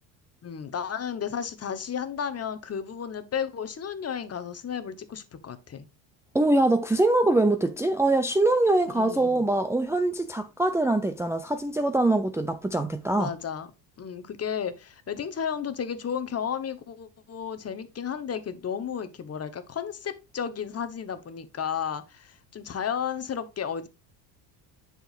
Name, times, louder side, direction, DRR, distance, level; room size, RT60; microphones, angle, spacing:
voice 1, 0.4-5.9 8.9-9.5 13.1-13.7 14.0-23.9, left 7 dB, 30° left, 1.1 m, -33 dB
voice 2, 6.3-13.3, right 2 dB, 5° right, 0.6 m, -23 dB
7.9 x 6.3 x 2.4 m
supercardioid pair, 85°, 48 cm